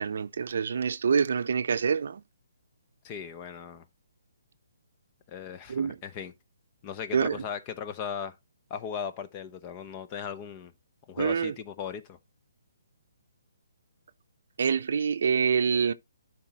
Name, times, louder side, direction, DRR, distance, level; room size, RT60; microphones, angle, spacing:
voice 1, 0.0-2.2 5.7-6.0 7.1-7.4 11.2-11.5 14.6-15.9, right 6 dB, 65° right, 0.6 m, -26 dB
voice 2, 3.0-3.8 5.3-6.3 6.8-8.4 8.7-10.7 11.1-12.2, left 7 dB, 25° left, 0.7 m, -37 dB
11.5 x 4.1 x 2.9 m
hypercardioid pair, 160°, 0 cm